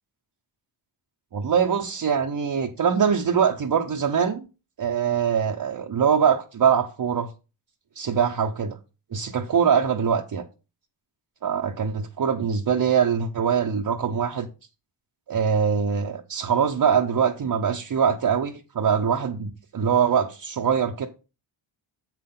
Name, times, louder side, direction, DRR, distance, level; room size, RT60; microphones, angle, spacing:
voice 1, 1.3-4.5 4.8-7.3 8.0-8.8 9.1-10.4 11.4-14.5 15.3-21.1, right 7 dB, 45° right, 0.8 m, -23 dB
7.4 x 5.8 x 3.8 m
cardioid pair, 90°, 49 cm